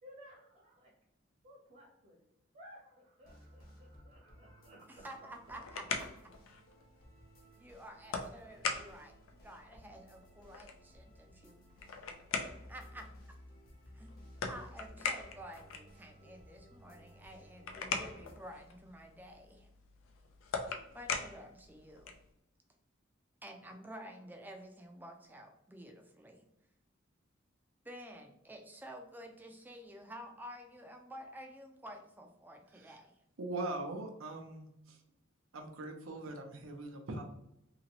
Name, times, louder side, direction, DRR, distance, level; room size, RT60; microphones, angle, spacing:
voice 1, 0.0-0.9 1.4-2.2 2.5-5.1, equal, 50° right, -4 dB, 0.9 m, -57 dB
sound 1, 3.2-18.4, equal, 50° left, 0.8 m, -58 dB
voice 2, 4.9-6.3 7.6-11.7 12.7-13.4 13.9-14.1 14.5-19.7 20.9-22.2 23.4-26.4 27.8-33.2, equal, 10° right, 4 dB, 0.4 m, -51 dB
sound 2, 5.2-22.3, left 4 dB, 85° left, 0.5 m, -43 dB
voice 3, 33.4-35.0 35.5-37.2, right 2 dB, 80° right, 4 dB, 0.7 m, -41 dB
2.9 x 2.8 x 2.9 m, 0.81 s
head